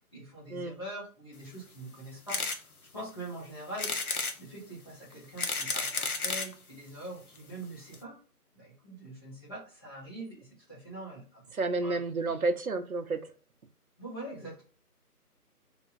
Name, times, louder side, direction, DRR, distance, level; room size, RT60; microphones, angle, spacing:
voice 1, 0.1-2.4 2.9-3.9 4.4-8.2 8.5-11.4 11.8-12.0 14.0-14.6, right 1 dB, 15° left, -8 dB, 1.1 m, -43 dB
sound 1, 2.3-2.6 3.1-3.2 3.8-4.4 5.1-6.5 7.4-7.5 7.6-7.7 7.9-8.0, left 3 dB, 65° left, 0.8 m, -32 dB
voice 2, 11.5-13.2, right 3 dB, 65° right, 8 dB, 0.7 m, -30 dB
2.9 x 2.4 x 4.1 m, 0.38 s
figure-of-eight pair, 155°, 47 cm